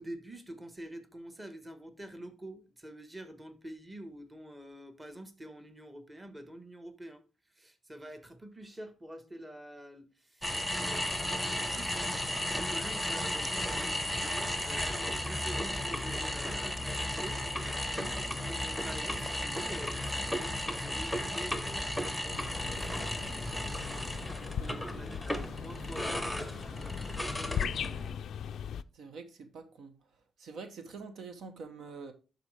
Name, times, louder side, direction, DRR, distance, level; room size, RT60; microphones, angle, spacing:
voice 1, 0.0-12.0 12.5-17.4 17.9-18.0 18.3-23.1 24.6-27.8, right 1 dB, 15° right, 1.2 m, -47 dB
sound 1, 10.4-28.1, left 1 dB, ahead, 0.9 m, -34 dB
voice 2, 17.8-18.1 24.6-25.0 28.9-29.9 30.4-32.1, right 4 dB, 65° right, 1.0 m, -46 dB
sound 2, 22.3-28.8, left 8 dB, 70° left, 0.3 m, -39 dB
12.0 x 4.0 x 3.2 m
cardioid pair, 105°, 0 cm